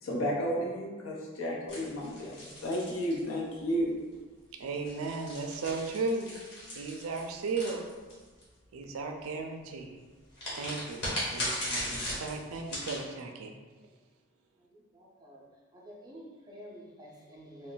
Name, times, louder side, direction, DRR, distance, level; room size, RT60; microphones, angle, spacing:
voice 1, 0.0-3.9, equal, 75° left, -2 dB, 0.6 m, -32 dB
sound 1, 1.7-3.7 4.7-8.4 10.4-13.0, left 1 dB, 50° left, 1.1 m, -38 dB
voice 2, 4.6-6.3 6.7-7.9 8.7-10.0 10.5-13.6, right 3 dB, 85° right, 3 dB, 0.4 m, -35 dB
voice 3, 14.7-15.4 15.7-17.7, equal, 20° right, -4 dB, 0.4 m, -49 dB
2.4 x 2.1 x 3.8 m, 1.4 s
head